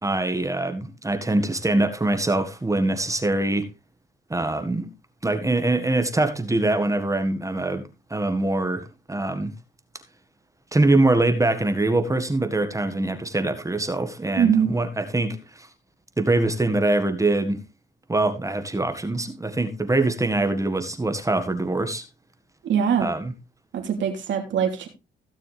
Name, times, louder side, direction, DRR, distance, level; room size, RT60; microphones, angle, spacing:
voice 1, 0.0-3.7 4.3-4.9 5.2-7.8 8.1-9.5 10.7-15.7 16.2-17.6 18.1-22.0 23.0-23.3, right 2 dB, 15° right, 1.7 m, -23 dB
voice 2, 14.4-14.7 22.6-23.1 23.7-24.9, right 8 dB, 70° right, 3.1 m, -22 dB
16.5 x 6.8 x 3.4 m
cardioid pair, 90°, 20 cm